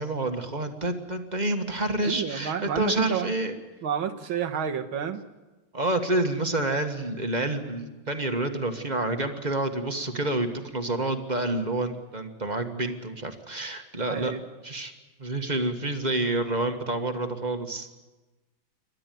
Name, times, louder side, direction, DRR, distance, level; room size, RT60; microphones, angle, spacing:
voice 1, 0.0-3.6 5.7-14.3 14.6-14.9 15.2-17.9, right 2 dB, 25° right, 6 dB, 1.4 m, -28 dB
voice 2, 2.0-3.3 3.8-5.2 14.1-14.4, right 8 dB, 85° right, 6 dB, 2.1 m, -30 dB
28.0 x 12.5 x 9.2 m, 1.2 s
omnidirectional pair, 2.2 m